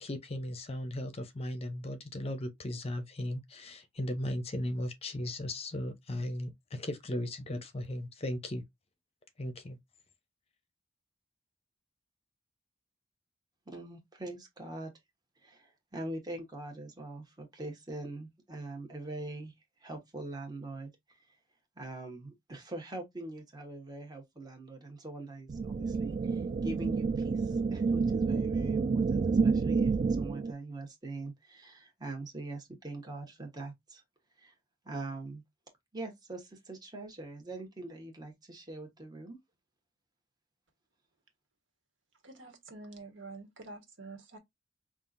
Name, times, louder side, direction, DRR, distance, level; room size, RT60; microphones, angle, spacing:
voice 1, 0.0-8.6 9.4-9.8, left 1 dB, 30° left, 0.7 m, -37 dB
voice 2, 13.7-14.9 15.4-19.5 19.8-21.4 21.8-34.0 34.4-34.5 34.8-35.4 35.9-39.4, right 2 dB, 20° right, 1.2 m, -43 dB
sound 1, 25.5-30.5, right 4 dB, 40° right, 0.3 m, -29 dB
voice 3, 42.2-44.4, right 3 dB, 70° right, 1.5 m, -47 dB
5.4 x 2.5 x 2.5 m
head